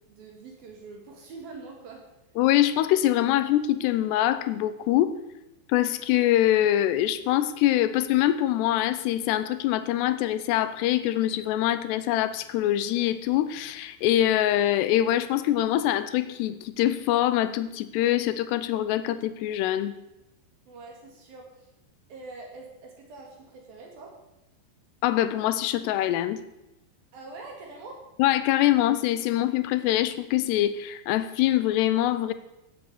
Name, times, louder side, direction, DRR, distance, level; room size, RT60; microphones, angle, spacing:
voice 1, 0.1-2.1 20.7-21.7 22.1-24.1 27.1-28.0, right 3 dB, 60° right, 0 dB, 3.9 m, -44 dB
voice 2, 2.4-5.1 5.7-19.9 25.0-26.4 28.2-32.3, left 13 dB, 80° left, 13 dB, 2.7 m, -24 dB
15.5 x 8.3 x 8.2 m, 0.91 s
omnidirectional pair, 5.2 m